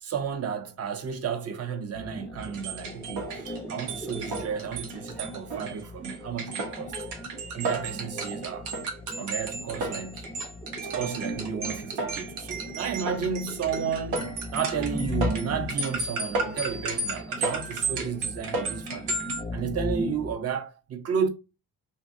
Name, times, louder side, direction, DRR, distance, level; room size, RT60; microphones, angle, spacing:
voice 1, 0.0-7.0 7.5-8.7 9.2-10.3 10.8-19.2 19.5-21.3, right 7 dB, 40° right, 0.6 m, -32 dB
sound 1, 1.9-20.3, left 1 dB, 15° left, 0.6 m, -38 dB
sound 2, 2.4-19.4, right 3 dB, 80° right, 0.8 m, -33 dB
2.6 x 2.4 x 2.5 m
supercardioid pair, 55°, 40 cm